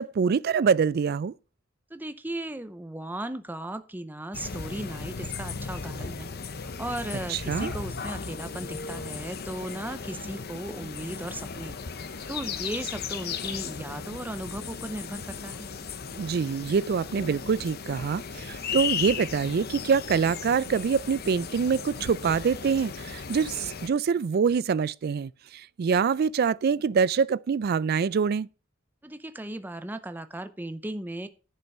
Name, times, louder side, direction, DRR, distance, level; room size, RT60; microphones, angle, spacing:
voice 1, 0.0-1.3 7.3-7.7 16.2-25.3 25.8-28.5, right 6 dB, 50° right, 0.3 m, -25 dB
voice 2, 1.9-6.3 6.5-15.7 29.0-31.3, right 1 dB, 10° right, 0.6 m, -36 dB
sound 1, 4.3-23.9, left 5 dB, 50° left, 0.8 m, -36 dB
10.5 x 5.6 x 5.5 m
head